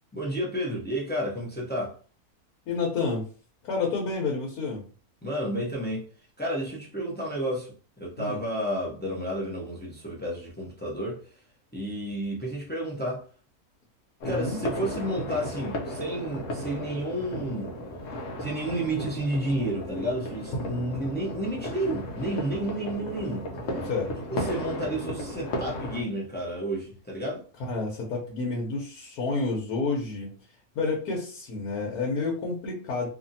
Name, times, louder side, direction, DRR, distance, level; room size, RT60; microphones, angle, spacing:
voice 1, 0.1-2.0 5.2-6.1 6.4-11.2 11.7-13.2 14.2-17.8 18.4-23.4 24.3-27.4, right 1 dB, 15° left, 0.3 m, -31 dB
voice 2, 2.7-3.3 3.6-4.9 8.2-8.4 14.2-14.6 23.8-24.1 27.6-30.3 30.7-33.1, left 3 dB, 85° left, 1.3 m, -29 dB
sound 1, 14.2-26.0, left 1 dB, 65° left, 0.9 m, -35 dB
2.8 x 2.6 x 2.6 m
omnidirectional pair, 1.6 m